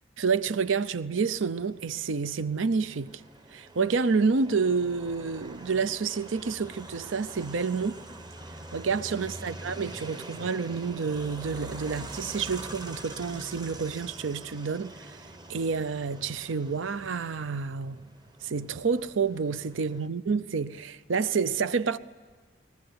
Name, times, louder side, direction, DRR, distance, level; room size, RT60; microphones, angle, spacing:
voice 1, 0.2-3.1 3.5-8.0 8.7-15.2 15.5-18.0 18.4-22.0, right 5 dB, 80° right, 0.6 m, -29 dB
sound 1, 1.7-20.1, right 1 dB, 20° right, 1.0 m, -44 dB
22.0 x 20.0 x 8.1 m
head